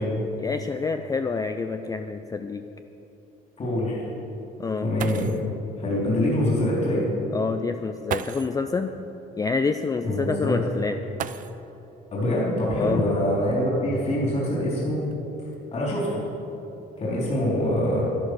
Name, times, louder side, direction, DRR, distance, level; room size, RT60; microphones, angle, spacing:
voice 1, 0.4-2.6 4.6-4.9 7.3-8.9 9.4-11.0 12.8-13.0, left 4 dB, 20° left, 8 dB, 0.4 m, -27 dB
voice 2, 3.6-4.0 4.8-5.3 5.8-7.1 10.0-10.6 12.1-15.0 15.7-16.2 17.0-18.0, left 1 dB, 40° left, -4 dB, 3.6 m, -24 dB
sound 1, 4.6-4.7 5.0-5.5 6.8-6.9 8.0-8.6 11.1-11.9 13.3-13.4 14.1-15.5 16.2-16.6 17.0-17.4, right 9 dB, 50° right, 0.5 m, -36 dB
11.5 x 11.0 x 6.2 m, 2.9 s
cardioid pair, 110°, 17 cm